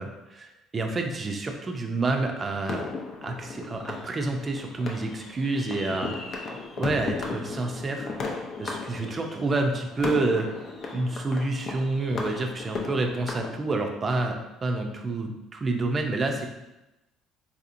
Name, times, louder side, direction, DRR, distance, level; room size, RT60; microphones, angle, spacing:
voice 1, 0.0-2.9 3.2-6.1 6.8-8.1 8.6-10.5 10.9-16.5, right 2 dB, 25° right, 3 dB, 0.5 m, -28 dB
sound 1, 2.7-13.5, left 4 dB, 45° left, 0.5 m, -36 dB
4.0 x 2.8 x 2.5 m, 0.96 s
cardioid pair, 125°, 0 cm